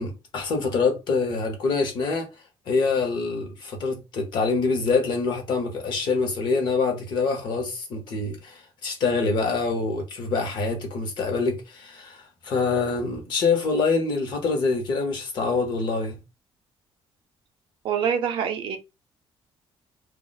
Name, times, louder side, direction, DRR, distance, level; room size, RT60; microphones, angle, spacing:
voice 1, 0.0-2.3 2.7-16.2, left 4 dB, 50° left, 0.8 m, -25 dB
voice 2, 17.8-18.8, right 8 dB, 60° right, 0.5 m, -25 dB
2.3 x 2.0 x 3.8 m
cardioid pair, 170°, 10 cm